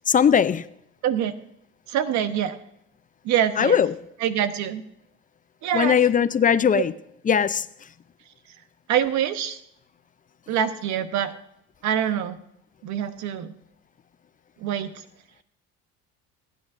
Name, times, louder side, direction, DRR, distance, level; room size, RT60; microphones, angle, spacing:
voice 1, 0.1-0.7 3.6-3.9 5.7-6.9 7.3-7.7, left 8 dB, 25° left, 0.5 m, -19 dB
voice 2, 1.9-2.6 3.2-3.8 4.2-4.8 5.6-6.0 6.7-6.8 8.9-9.6 10.5-11.3 11.8-12.4 12.8-13.5 14.6-15.0, right 9 dB, 65° right, 1.1 m, -25 dB
20.5 x 9.4 x 2.6 m
supercardioid pair, 90°, 31 cm